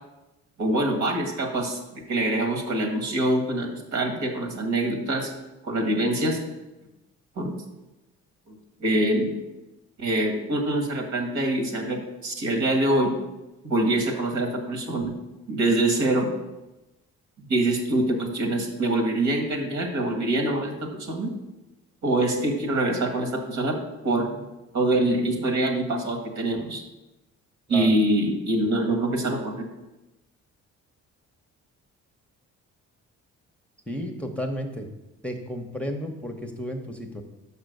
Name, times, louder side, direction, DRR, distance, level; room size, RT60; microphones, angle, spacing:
voice 1, 0.6-5.3 5.6-6.4 7.4-7.6 8.5-8.6 8.8-9.3 10.0-13.1 13.6-15.1 15.5-16.3 17.5-21.3 22.0-24.4 24.7-26.8 27.7-29.7, right 1 dB, 70° right, 2 dB, 1.9 m, -25 dB
voice 2, 33.9-34.9 35.2-37.2, equal, 5° left, 2 dB, 0.9 m, -32 dB
5.9 x 5.5 x 6.6 m, 1.0 s
cardioid pair, 90°, 30 cm